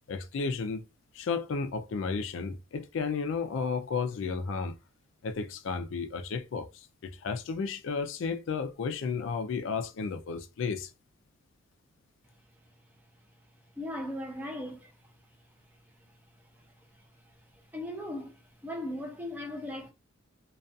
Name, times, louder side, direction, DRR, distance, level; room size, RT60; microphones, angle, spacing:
voice 1, 0.1-0.8 1.1-4.8 5.2-10.9, left 5 dB, 65° left, 0.4 m, -33 dB
voice 2, 13.8-14.9 17.7-18.3 18.6-19.9, left 1 dB, 10° right, 0.5 m, -37 dB
2.3 x 2.3 x 2.5 m
head